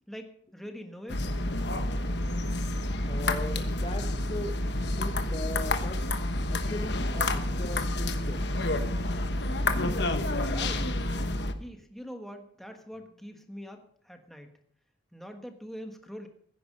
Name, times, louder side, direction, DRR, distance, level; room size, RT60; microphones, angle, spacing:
voice 1, 0.1-1.3 10.4-10.9 11.6-14.6 15.1-16.3, equal, ahead, 4 dB, 1.3 m, -43 dB
sound 1, 1.1-11.5, left 1 dB, 60° left, 1.1 m, -29 dB
voice 2, 3.0-4.6 4.9-9.0, left 1 dB, 30° left, 6 dB, 0.9 m, -39 dB
15.5 x 10.5 x 5.3 m, 0.62 s
head